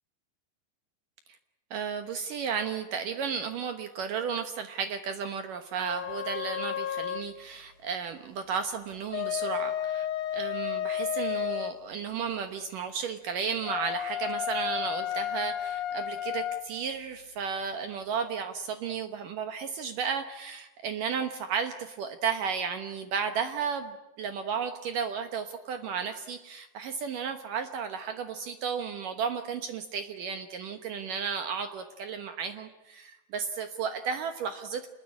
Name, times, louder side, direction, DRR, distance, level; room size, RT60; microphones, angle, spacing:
voice 1, 1.7-10.1 10.3-34.9, right 6 dB, 75° right, 8 dB, 2.0 m, -33 dB
sound 1, 5.8-7.3 8.9-11.8 13.6-16.7, left 10 dB, 80° left, 1.7 m, -32 dB
27.0 x 21.0 x 9.7 m, 0.95 s
omnidirectional pair, 5.5 m